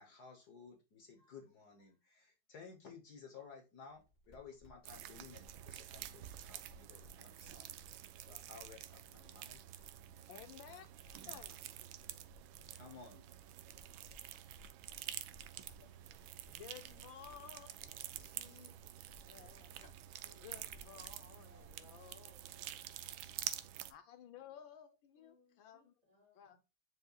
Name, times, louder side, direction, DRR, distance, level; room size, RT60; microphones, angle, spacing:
voice 1, 0.0-7.7 8.2-9.6 10.2-10.6 11.2-11.6 12.7-13.2, left 5 dB, 55° left, 1.5 m, -56 dB
sound 1, 3.9-21.8, equal, 20° left, 5.1 m, -65 dB
sound 2, 4.9-23.9, right 12 dB, 75° right, 1.4 m, -49 dB
voice 2, 10.3-11.7 15.8-15.9 16.5-19.9 20.4-22.4 23.9-25.9 26.4-26.6, left 9 dB, 75° left, 1.5 m, -56 dB
voice 3, 20.1-20.5 21.5-23.1 24.4-24.5 25.2-26.6, right 1 dB, 35° right, 2.7 m, -71 dB
9.5 x 5.6 x 2.3 m
omnidirectional pair, 2.2 m